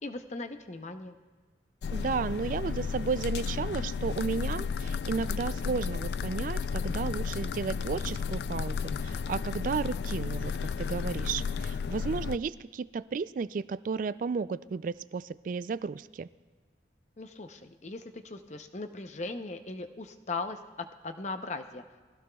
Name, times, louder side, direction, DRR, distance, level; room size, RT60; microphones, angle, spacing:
voice 1, 0.0-1.2 17.2-20.6 21.0-21.8, left 3 dB, 40° left, 8 dB, 0.7 m, -38 dB
sound 1, 1.8-12.4, left 6 dB, 65° left, 0.3 m, -33 dB
voice 2, 1.9-8.8 9.0-16.3, right 5 dB, 45° right, 17 dB, 0.3 m, -33 dB
22.0 x 16.0 x 2.3 m, 1.5 s
head